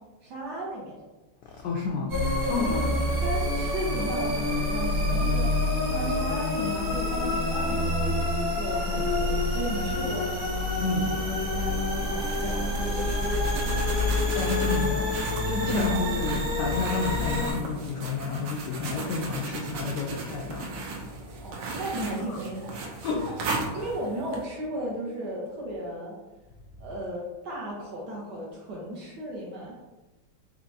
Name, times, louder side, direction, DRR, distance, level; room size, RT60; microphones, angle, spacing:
voice 1, 0.2-1.0 2.4-2.8 3.2-8.1 8.5-10.3 11.6-13.7 15.7-16.0 21.4-23.3 23.7-26.1 26.8-29.8, right 1 dB, 70° right, -3 dB, 1.1 m, -35 dB
voice 2, 1.6-2.2 2.5-2.9 8.9-9.0 10.8-11.2 14.3-15.1 15.4-20.9 22.3-22.4 23.0-23.3, left 3 dB, 85° left, -1 dB, 0.9 m, -30 dB
sound 1, 2.1-17.5, left 2 dB, 45° right, 1.4 m, -27 dB
sound 2, 12.0-24.4, right 3 dB, 85° right, 1.6 m, -37 dB
4.4 x 2.8 x 2.6 m, 1.1 s
omnidirectional pair, 2.4 m